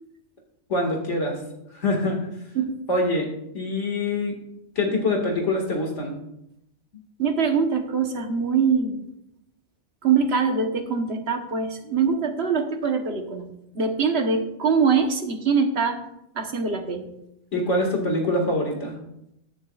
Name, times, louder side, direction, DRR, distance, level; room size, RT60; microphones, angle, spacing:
voice 1, 0.7-1.4 1.7-2.3 2.9-3.3 3.5-4.4 4.8-6.1 17.5-19.0, left 1 dB, 85° left, 1 dB, 2.3 m, -24 dB
voice 2, 7.2-9.0 10.0-16.0 16.3-17.1, right 5 dB, 65° right, 5 dB, 1.4 m, -23 dB
21.0 x 7.2 x 2.4 m, 0.81 s
omnidirectional pair, 1.2 m